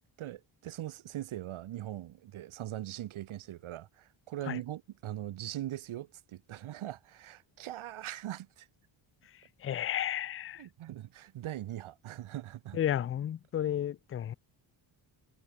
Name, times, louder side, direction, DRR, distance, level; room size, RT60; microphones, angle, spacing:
voice 1, 0.0-8.7 10.6-12.8, right 13 dB, 90° right, 2.8 m, -41 dB
voice 2, 9.6-10.6 12.7-14.3, left 10 dB, 30° left, 0.4 m, -32 dB
wide cardioid pair, 170°, 47 cm